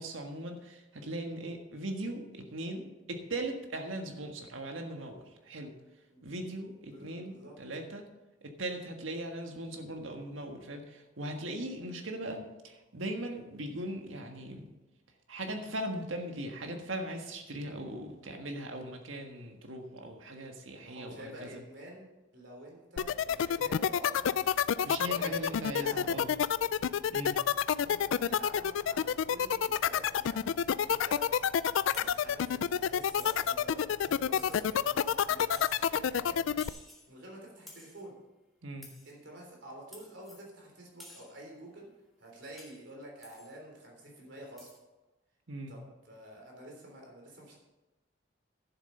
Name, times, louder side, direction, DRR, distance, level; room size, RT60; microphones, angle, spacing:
voice 1, 0.0-5.7 6.2-8.1 8.4-14.7 15.3-21.5 24.8-26.3 27.1-27.4 38.6-38.9 45.5-45.7, right 1 dB, 85° right, 4 dB, 1.5 m, -39 dB
voice 2, 6.9-7.6 20.7-26.0 27.6-36.4 37.1-38.2 39.1-41.9 42.2-44.7 45.7-47.6, right 1 dB, 65° right, -1 dB, 3.5 m, -49 dB
sound 1, 23.0-36.7, left 8 dB, 80° left, 0.3 m, -28 dB
sound 2, 31.9-32.3 33.2-33.6 34.4-34.9 35.5-35.9 36.6-37.1 37.7-38.1 38.8-39.2 39.9-40.5 41.0-41.4 42.6-42.9 43.2-43.5 44.6-44.8, left 1 dB, ahead, 2.1 m, -52 dB
11.5 x 7.4 x 5.5 m, 1.1 s
head